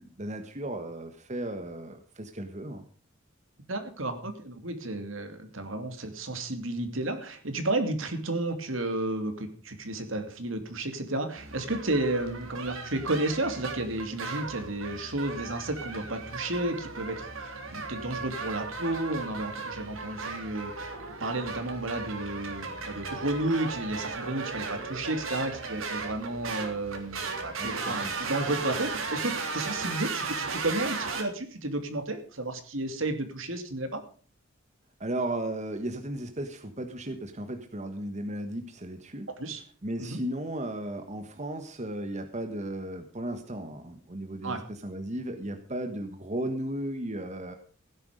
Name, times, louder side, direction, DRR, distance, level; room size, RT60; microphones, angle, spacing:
voice 1, 0.0-2.9 27.6-28.1 35.0-39.3 39.8-47.5, right 1 dB, 35° right, 6 dB, 1.5 m, -35 dB
voice 2, 3.7-34.0 39.3-39.6 40.0-40.2 44.4-44.6, right 2 dB, 70° right, 7 dB, 2.7 m, -32 dB
sound 1, 11.4-31.2, right 4 dB, 90° right, 3.4 m, -36 dB
16.5 x 10.5 x 5.2 m, 0.41 s
head